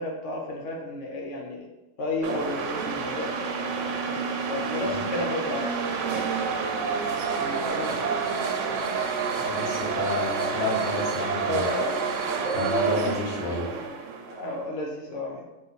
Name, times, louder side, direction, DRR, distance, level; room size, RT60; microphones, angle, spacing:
voice 1, 0.0-1.7 2.0-3.6 4.1-5.8 7.4-8.0 11.4-12.0 14.3-15.4, left 1 dB, 70° left, -1 dB, 1.1 m, -32 dB
sound 1, 2.2-14.5, right 5 dB, 75° right, 0.9 m, -28 dB
voice 2, 9.4-11.7 12.5-13.7, left 3 dB, 45° left, -2 dB, 0.9 m, -30 dB
5.2 x 2.5 x 4.0 m, 1.1 s
omnidirectional pair, 1.3 m